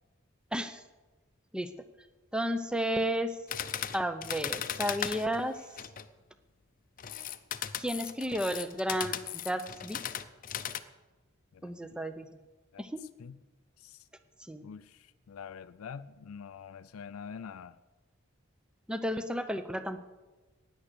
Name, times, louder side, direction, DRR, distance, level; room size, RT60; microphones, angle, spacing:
voice 1, 0.5-0.8 1.5-1.7 2.3-3.4 3.9-5.6 7.8-9.2 9.4-10.0 11.6-12.3 12.8-13.0 14.4-14.6 18.9-20.0, equal, 5° right, 10 dB, 0.6 m, -32 dB
sound 1, 3.5-6.1 7.0-10.8, left 9 dB, 40° left, 0.6 m, -37 dB
voice 2, 11.5-12.0 12.7-13.4 13.8-14.1 14.6-17.8, left 6 dB, 90° left, 13 dB, 0.4 m, -46 dB
16.0 x 10.0 x 6.7 m, 1.2 s
head